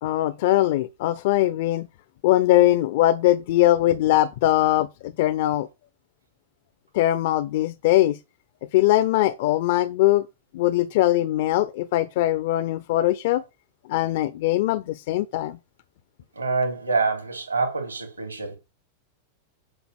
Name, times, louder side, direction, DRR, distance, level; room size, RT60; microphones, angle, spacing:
voice 1, 0.0-1.9 2.2-5.7 6.9-8.2 8.7-10.2 10.5-13.4 13.9-15.6, left 15 dB, 50° left, 0.5 m, -21 dB
voice 2, 16.3-18.6, right 4 dB, 80° right, 3.0 m, -26 dB
9.8 x 5.6 x 5.8 m
figure-of-eight pair, 90°, 0 cm